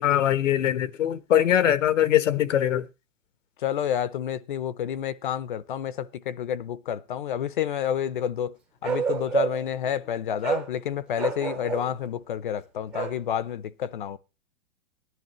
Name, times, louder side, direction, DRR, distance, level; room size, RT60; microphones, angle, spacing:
voice 1, 0.0-2.9, left 11 dB, 70° left, 1.1 m, -22 dB
voice 2, 3.6-8.5 8.8-14.2, left 9 dB, 40° left, 0.6 m, -29 dB
Bark, 8.8-9.7 10.4-10.7 11.1-11.9 12.9-13.2, right 6 dB, 5° right, 0.5 m, -28 dB
17.5 x 10.5 x 3.0 m
supercardioid pair, 180°, 38 cm